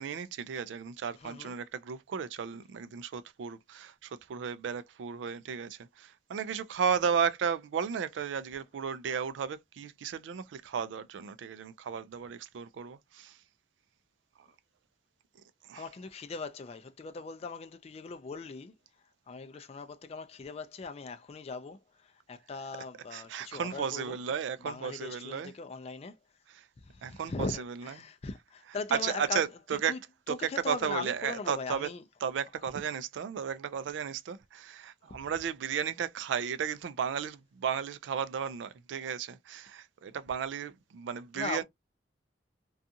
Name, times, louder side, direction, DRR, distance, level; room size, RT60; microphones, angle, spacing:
voice 1, 0.0-13.4 15.7-15.8 23.1-25.5 26.5-26.6 27.0-27.9 28.9-30.0 30.3-31.9 32.2-41.6, right 7 dB, 85° right, 0.3 m, -34 dB
voice 2, 1.2-1.6 15.7-18.7 19.3-21.8 22.0-24.2 24.6-26.1 26.8-29.4 29.9-30.0 30.5-32.0 35.1-35.2 41.3-41.6, left 4 dB, 35° left, 0.3 m, -40 dB
2.5 x 2.3 x 2.7 m
head